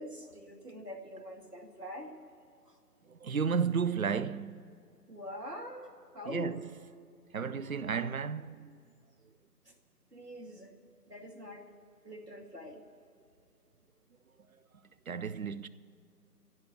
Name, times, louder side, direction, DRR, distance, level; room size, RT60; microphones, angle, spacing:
voice 1, 0.0-2.1 2.7-2.8 5.1-6.6 9.7-9.8 10.1-10.7 11.1-11.7 12.0-12.8, left 1 dB, 85° right, 2.3 m, -44 dB
voice 2, 3.1-4.7 6.3-6.6 7.3-8.8 15.1-15.7, right 6 dB, 60° right, 0.6 m, -33 dB
22.5 x 16.0 x 3.1 m
figure-of-eight pair, 155°, 46 cm